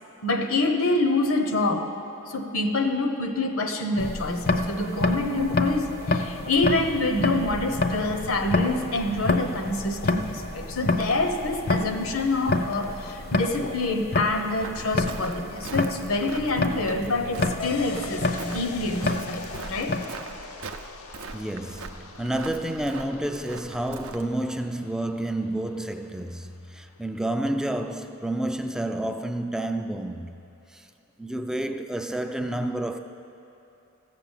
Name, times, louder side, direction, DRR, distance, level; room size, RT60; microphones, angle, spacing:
voice 1, 0.2-1.9 2.3-20.0, left 2 dB, 70° left, 1.0 m, -26 dB
sound 1, 4.0-20.0, left 2 dB, 45° left, 0.6 m, -29 dB
Walk footsteps, 14.6-24.3, right 4 dB, 65° right, 0.5 m, -41 dB
sound 2, 17.6-26.6, left 4 dB, 85° left, 0.6 m, -42 dB
voice 2, 21.3-30.3 30.7-30.9 31.2-33.0, right 1 dB, 5° right, 0.4 m, -30 dB
15.0 x 6.9 x 7.3 m
head